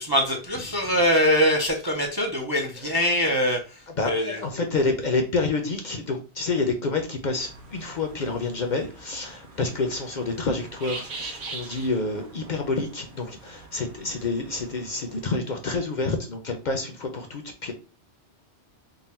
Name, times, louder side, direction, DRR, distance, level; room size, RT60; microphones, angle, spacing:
voice 1, 0.0-4.4, equal, 30° right, 2 dB, 0.5 m, -23 dB
voice 2, 4.0-17.7, left 3 dB, 50° left, 4 dB, 0.7 m, -28 dB
sound 1, 7.4-15.4, right 3 dB, 70° right, 1.2 m, -43 dB
3.9 x 2.2 x 4.2 m, 0.34 s
omnidirectional pair, 1.2 m